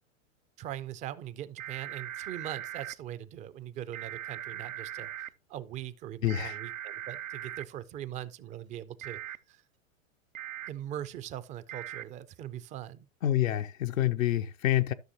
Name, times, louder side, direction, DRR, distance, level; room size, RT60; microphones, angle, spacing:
voice 1, 0.6-5.1 5.5-9.2 9.5-9.6 10.7-13.1, right 11 dB, 20° right, 0.4 m, -41 dB
sound 1, 1.6-2.9 3.9-5.3 6.3-7.6 9.0-9.4 10.3-10.7 11.7-12.0, right 11 dB, 85° right, 0.7 m, -40 dB
voice 2, 6.2-6.6 13.2-14.9, left 13 dB, 75° left, 0.6 m, -27 dB
13.0 x 6.2 x 2.8 m
hypercardioid pair, 105°, 40 cm